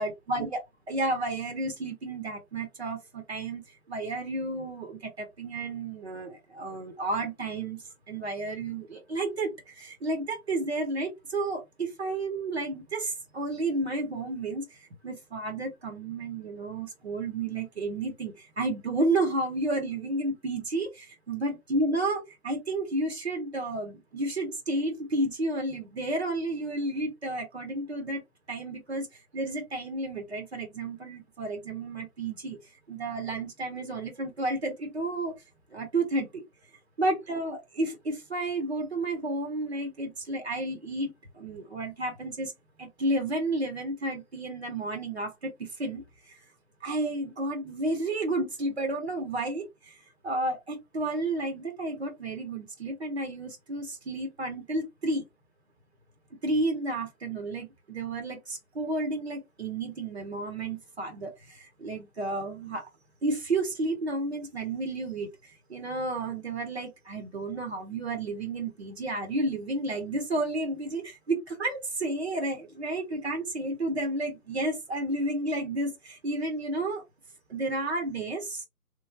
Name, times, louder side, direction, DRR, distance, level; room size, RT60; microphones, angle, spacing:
voice 1, 0.0-28.2 28.5-29.1 29.3-32.6 32.9-35.3 35.7-36.4 37.0-42.5 42.8-46.4 46.8-55.2 56.4-62.9 63.2-65.3 65.7-77.0 77.5-78.7, right 2 dB, 45° right, 1.2 m, -31 dB
3.2 x 2.2 x 3.6 m
figure-of-eight pair, 160°, 45 cm